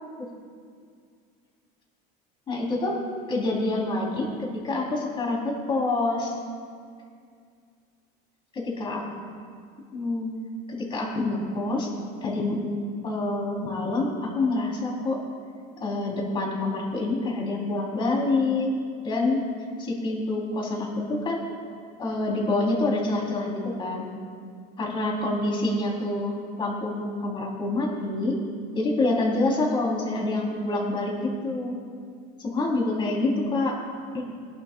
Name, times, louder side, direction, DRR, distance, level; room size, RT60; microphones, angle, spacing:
voice 1, 2.5-3.0 3.3-6.4 8.5-9.0 9.9-10.3 10.7-11.9 12.2-12.7 13.0-15.2 15.8-18.7 19.0-19.4 19.8-21.4 22.0-24.1 24.8-28.4 28.7-31.8 32.4-33.7 34.1-34.3, left 2 dB, 25° left, -2 dB, 3.1 m, -27 dB
23.5 x 11.5 x 2.2 m, 2.2 s
cardioid pair, 145°, 19 cm